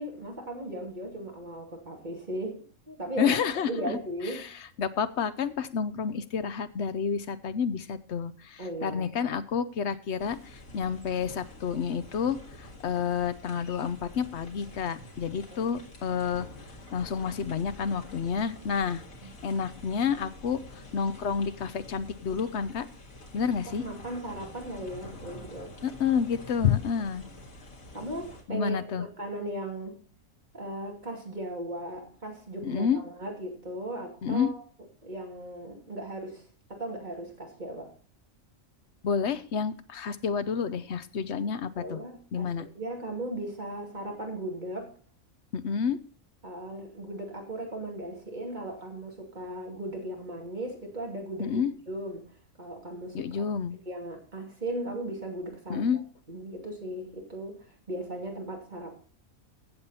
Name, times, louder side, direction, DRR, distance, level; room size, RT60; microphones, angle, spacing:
voice 1, 0.0-3.4 3.7-4.5 8.6-9.1 15.5-15.8 19.2-19.3 23.7-25.7 27.9-30.0 30.5-34.6 35.0-36.4 36.7-37.9 41.8-44.9 46.4-52.3 52.6-53.4 53.9-55.9 56.3-59.0, right 1 dB, 35° right, 1 dB, 2.6 m, -37 dB
voice 2, 3.2-4.0 4.8-10.4 10.7-12.4 12.8-16.5 16.9-19.0 19.4-20.6 20.9-22.9 23.3-23.8 25.8-27.2 28.5-29.1 32.6-33.0 34.2-34.5 39.0-42.0 42.3-42.7 45.5-46.0 51.4-51.7 53.1-53.8 55.7-56.0, left 7 dB, 60° left, 13 dB, 1.0 m, -29 dB
sound 1, 10.2-28.4, left 1 dB, 90° left, 2.4 m, -47 dB
16.0 x 7.2 x 4.2 m, 0.42 s
omnidirectional pair, 1.4 m